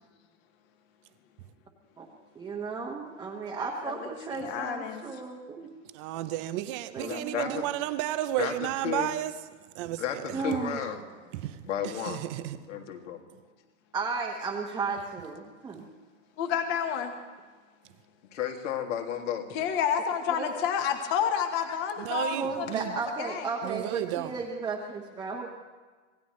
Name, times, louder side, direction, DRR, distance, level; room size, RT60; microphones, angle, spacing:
voice 1, 2.3-5.7 6.9-7.7 10.3-10.8 13.9-15.9 20.3-20.5 22.3-25.5, right 4 dB, 10° right, 1.1 m, -34 dB
voice 2, 4.3-5.0 16.4-17.1 19.5-23.4, left 8 dB, 30° left, 1.2 m, -30 dB
voice 3, 5.9-9.3 9.8-10.4 11.3-11.6 11.8-12.6 22.0-22.9 23.6-24.3, right 14 dB, 25° right, 0.5 m, -32 dB
voice 4, 7.0-7.7 8.4-9.1 10.0-11.0 11.6-12.3 12.7-13.2 18.3-19.5, left 9 dB, 70° left, 2.4 m, -33 dB
26.0 x 17.5 x 3.2 m
hypercardioid pair, 150°, 38 cm